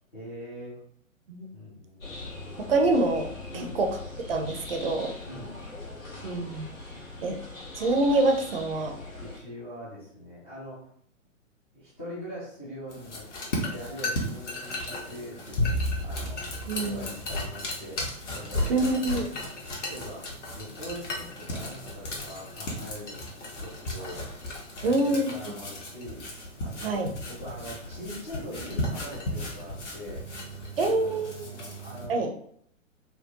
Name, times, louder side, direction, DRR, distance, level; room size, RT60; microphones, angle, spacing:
voice 1, 0.1-0.8 1.5-2.3 3.5-3.7 5.2-5.6 9.2-10.9 11.7-13.2 13.7-16.4 16.7-19.3 19.9-20.3 20.5-23.2 23.5-24.2 24.8-26.2 26.6-30.3 30.8-32.3, equal, 10° left, -10 dB, 0.4 m, -42 dB
sound 1, 2.0-9.4, left 2 dB, 80° left, 1.5 m, -41 dB
voice 2, 2.6-3.9 4.3-5.1 6.2-6.7 7.2-7.4 7.8-8.9 16.7-17.0 18.7-19.3 24.8-25.3 26.8-27.1 30.8-31.3 32.1-32.3, right 2 dB, 45° right, 4 dB, 0.6 m, -25 dB
sound 2, 12.9-32.1, left 1 dB, 60° left, 1.1 m, -36 dB
sound 3, 15.6-18.1, left 1 dB, 30° left, 0.7 m, -31 dB
4.4 x 2.1 x 2.8 m, 0.65 s
figure-of-eight pair, 115°, 40 cm